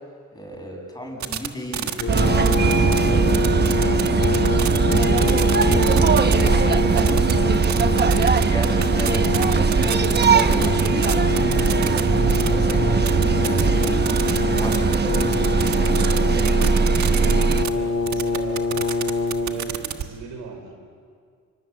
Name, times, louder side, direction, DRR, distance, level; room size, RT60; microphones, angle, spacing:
voice 1, 0.3-2.0 2.4-3.5 3.8-4.4 4.9-7.1 8.4-9.2 9.5-9.9 10.2-12.1 12.4-14.2 14.6-16.6, equal, 15° left, 1 dB, 7.4 m, -35 dB
sound 1, 1.2-1.5 1.7-3.0 3.3-12.7 13.1-17.7 18.1-20.0, right 10 dB, 70° right, 1.5 m, -28 dB
Brass instrument, 2.0-19.8, left 3 dB, 50° left, 3.2 m, -25 dB
sound 2, 2.1-17.7, right 5 dB, 35° right, 1.2 m, -20 dB
voice 2, 17.7-18.6 19.4-20.7, right 5 dB, 90° right, 4 dB, 4.6 m, -38 dB
25.5 x 24.0 x 8.4 m, 2.1 s
cardioid pair, 90°, 30 cm